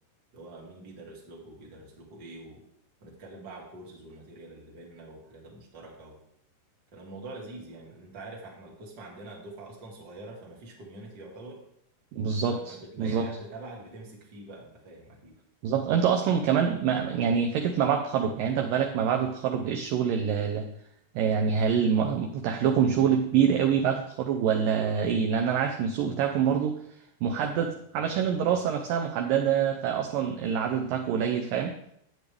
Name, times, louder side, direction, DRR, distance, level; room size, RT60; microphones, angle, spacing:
voice 1, 0.3-2.6 3.0-6.2 6.9-11.6 12.5-15.4, right 2 dB, 35° right, -2 dB, 1.8 m, -45 dB
voice 2, 12.1-13.3 15.6-20.7 21.2-26.8 27.2-31.7, right 7 dB, 80° right, 3 dB, 2.0 m, -26 dB
11.0 x 8.4 x 3.4 m, 0.71 s
omnidirectional pair, 4.7 m